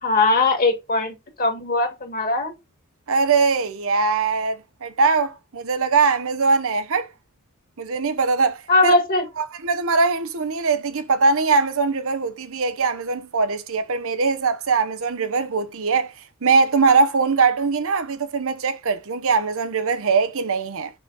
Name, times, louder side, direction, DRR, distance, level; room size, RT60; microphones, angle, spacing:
voice 1, 0.0-2.5 8.7-9.3, left 2 dB, 40° left, 1.9 m, -20 dB
voice 2, 3.1-7.1 7.8-8.9 9.4-16.1 16.4-20.9, right 4 dB, 65° right, 0.8 m, -21 dB
6.4 x 5.0 x 4.0 m
head